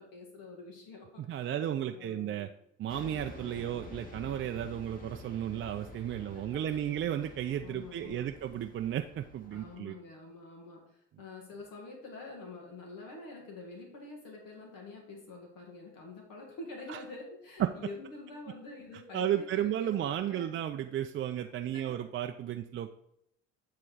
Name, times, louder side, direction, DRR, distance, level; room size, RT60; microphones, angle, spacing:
voice 1, 0.0-1.5 1.9-2.4 6.2-6.6 7.6-8.3 9.5-20.6 21.7-22.0, left 3 dB, 60° left, 0 dB, 2.1 m, -47 dB
voice 2, 1.2-2.5 2.8-10.0 16.9-17.0 17.6-17.7 19.1-22.9, right 10 dB, 35° right, 5 dB, 0.5 m, -33 dB
sound 1, 2.9-9.8, left 2 dB, 25° left, 2.0 m, -49 dB
9.4 x 3.8 x 4.7 m, 0.78 s
hypercardioid pair, 70°, 37 cm